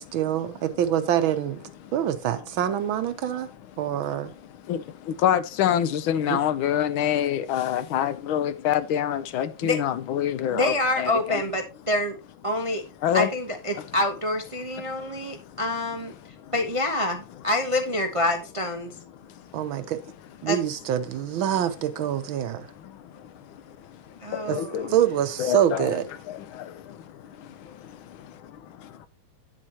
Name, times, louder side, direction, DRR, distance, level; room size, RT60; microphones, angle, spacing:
voice 1, 0.0-3.5 3.8-4.3 6.3-6.4 19.5-20.0 20.4-22.7 24.5-24.6 24.9-26.1, right 10 dB, 80° right, 1.7 m, -25 dB
voice 2, 4.7-11.4 13.0-13.3 15.0-15.6 16.4-16.5 19.2-19.6 22.8-24.9 25.4-26.0 26.3-29.1, left 10 dB, 80° left, 1.5 m, -28 dB
voice 3, 10.5-12.2 12.4-12.8 13.1-19.0 20.5-20.6 24.2-24.9, left 1 dB, 50° right, 0.4 m, -27 dB
9.8 x 7.6 x 2.9 m
omnidirectional pair, 2.2 m